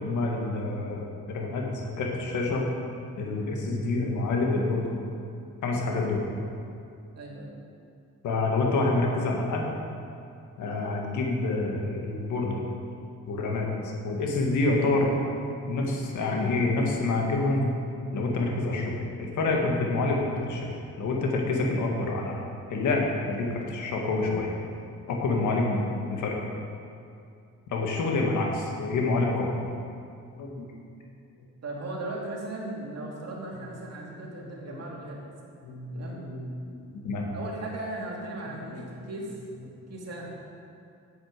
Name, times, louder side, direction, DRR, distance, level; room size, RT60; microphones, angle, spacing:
voice 1, 0.0-2.7 3.2-4.9 5.6-6.3 8.2-9.7 10.6-12.6 13.3-13.7 14.0-15.1 15.7-17.7 18.1-22.4 22.7-24.5 25.1-25.8 26.1-26.4 27.7-29.5 30.4-30.7 34.4-34.8 35.6-36.0 36.3-37.3 38.7-38.8, left 2 dB, 75° left, 0 dB, 2.1 m, -27 dB
voice 2, 7.1-7.6 25.6-25.7 27.9-28.1 31.6-35.3 35.9-36.2 37.3-39.4 39.9-40.3, right 2 dB, 55° right, -3 dB, 2.7 m, -37 dB
8.7 x 8.1 x 6.7 m, 2.5 s
cardioid pair, 90°, 30 cm